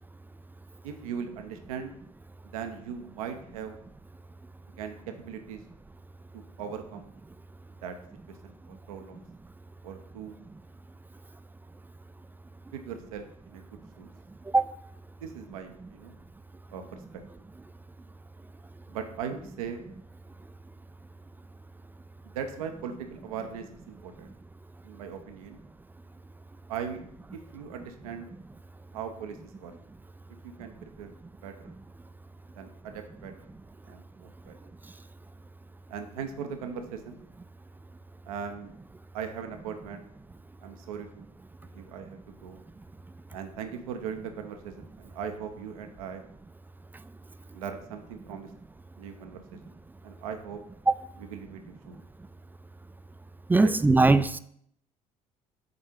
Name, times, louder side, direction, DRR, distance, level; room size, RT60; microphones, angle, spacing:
voice 1, 0.8-2.0 2.5-3.7 4.8-5.6 6.3-7.1 7.8-7.9 8.4-9.2 9.8-10.4 12.7-14.1 15.2-16.2 16.7-17.0 18.9-19.8 22.3-24.3 24.8-25.6 26.7-27.0 27.3-28.3 28.9-29.7 30.4-31.1 31.4-31.8 32.6-33.5 33.9-34.5 35.9-37.2 38.3-38.7 39.1-40.0 40.6-41.3 41.7-42.6 43.3-46.2 47.5-48.5 49.0-49.6 50.0-50.6 51.2-52.0 53.6-53.7, right 7 dB, 75° right, 0.7 m, -39 dB
voice 2, 53.5-54.4, right 3 dB, 10° right, 0.3 m, -20 dB
6.0 x 4.4 x 5.0 m
figure-of-eight pair, 55°, 18 cm